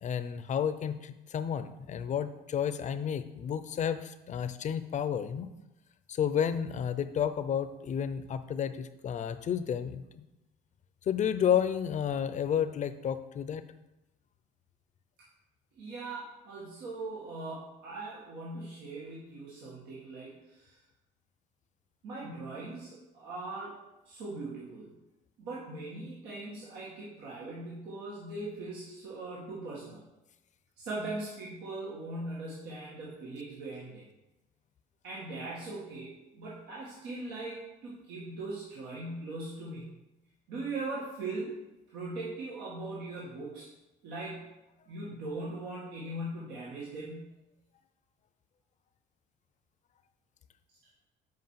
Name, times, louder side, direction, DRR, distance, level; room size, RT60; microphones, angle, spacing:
voice 1, 0.0-5.5 6.1-10.2 11.1-13.7, left 8 dB, 45° left, 12 dB, 0.6 m, -31 dB
voice 2, 15.8-20.8 22.0-23.8 24.1-25.0 25.4-30.0 30.8-34.0 35.0-40.0 40.5-41.5 41.9-43.7 44.0-44.5 44.9-47.3, right 2 dB, 90° right, -7 dB, 2.1 m, -40 dB
7.7 x 5.1 x 5.8 m, 0.98 s
cardioid pair, 110°, 17 cm